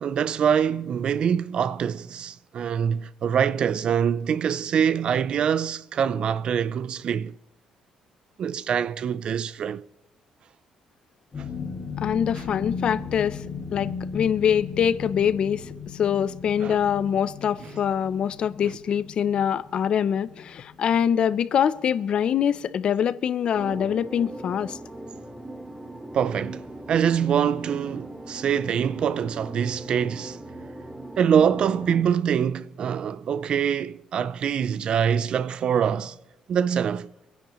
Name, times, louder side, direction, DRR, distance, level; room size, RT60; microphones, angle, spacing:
voice 1, 0.0-7.4 8.4-9.9 16.6-16.8 26.1-30.4 31.2-36.2 36.5-37.1, right 8 dB, 50° right, 0.4 m, -24 dB
sound 1, 11.3-22.0 22.3-22.6 23.0-23.2, left 6 dB, 30° left, 1.9 m, -37 dB
voice 2, 12.0-13.4 13.7-24.8, left 8 dB, 50° left, 0.5 m, -24 dB
sound 2, 23.5-32.0, right 1 dB, 10° right, 1.0 m, -39 dB
25.0 x 10.0 x 3.0 m
cardioid pair, 140°, 2 cm